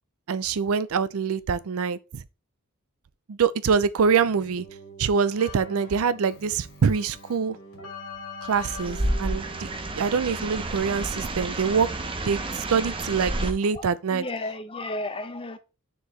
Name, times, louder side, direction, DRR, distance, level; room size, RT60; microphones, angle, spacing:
voice 1, 0.3-2.2 3.3-4.7 5.0-7.6 8.4-9.7 9.9-11.9 12.3-12.4 12.7-14.3, right 6 dB, 70° right, 0.4 m, -24 dB
Keyboard (musical), 4.0-11.3, left 1 dB, 75° left, 2.6 m, -43 dB
sound 1, 8.5-13.5, right 1 dB, 25° right, 0.7 m, -30 dB
voice 2, 13.7-15.6, left 2 dB, 25° left, 0.6 m, -33 dB
6.4 x 4.6 x 3.2 m
head